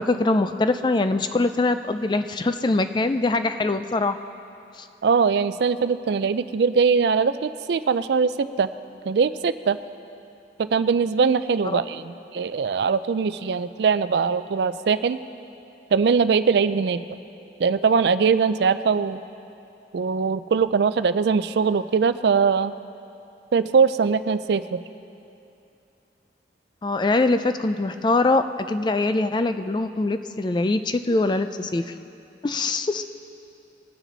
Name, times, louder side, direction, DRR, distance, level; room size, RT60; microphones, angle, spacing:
voice 1, 0.0-4.2 11.6-11.8 26.8-31.9 32.4-33.0, left 2 dB, 25° left, 10 dB, 0.3 m, -23 dB
voice 2, 5.0-8.7 9.1-9.8 10.6-15.2 15.9-17.0 17.6-19.2 19.9-22.7 23.5-24.8, right 5 dB, 70° right, 13 dB, 0.4 m, -21 dB
20.5 x 9.2 x 4.0 m, 2.7 s
head